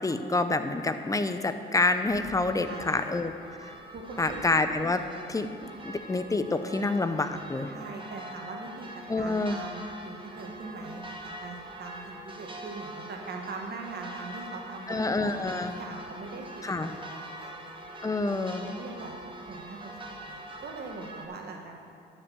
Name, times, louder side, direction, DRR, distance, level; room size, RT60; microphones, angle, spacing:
voice 1, 0.0-3.3 3.6-3.7 4.2-5.0 5.3-7.7 9.1-9.6 14.9-15.8 16.6-16.9 18.0-18.7, left 3 dB, 15° left, 9 dB, 0.7 m, -28 dB
sound 1, 2.1-21.3, right 1 dB, 25° right, 1.4 m, -44 dB
voice 2, 2.6-3.1 3.9-4.4 7.7-14.8 15.2-17.5 18.6-19.1 19.5-21.8, right 3 dB, 55° right, 1 dB, 1.7 m, -42 dB
11.5 x 5.3 x 7.3 m, 2.6 s
cardioid pair, 90°, 20 cm